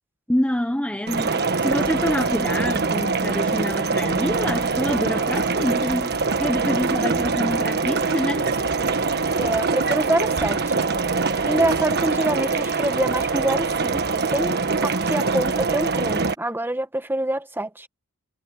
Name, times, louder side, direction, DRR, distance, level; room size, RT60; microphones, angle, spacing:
voice 1, 0.3-6.1 6.4-8.5, equal, 5° left, 1.2 m, -26 dB
sound 1, 1.1-16.3, right 4 dB, 50° right, 1.4 m, -23 dB
sound 2, 3.8-13.9, right 1 dB, 75° right, 5.7 m, -41 dB
voice 2, 9.4-10.7 11.5-14.6 14.8-17.9, right 1 dB, 10° right, 1.5 m, -26 dB
head